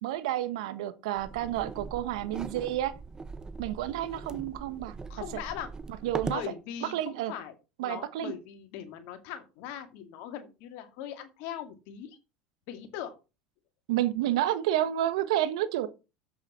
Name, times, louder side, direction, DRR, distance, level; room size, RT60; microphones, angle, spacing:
voice 1, 0.0-2.9 3.6-4.9 6.0-6.4 6.8-7.3 7.8-8.3 13.9-15.9, right 13 dB, 80° right, 1.3 m, -30 dB
sound 1, 1.2-6.5, right 4 dB, 20° right, 0.9 m, -40 dB
voice 2, 5.1-5.7 6.3-7.5 7.8-12.2 12.7-13.2, left 10 dB, 65° left, 2.2 m, -40 dB
7.9 x 7.2 x 5.7 m
hypercardioid pair, 90°, 3 cm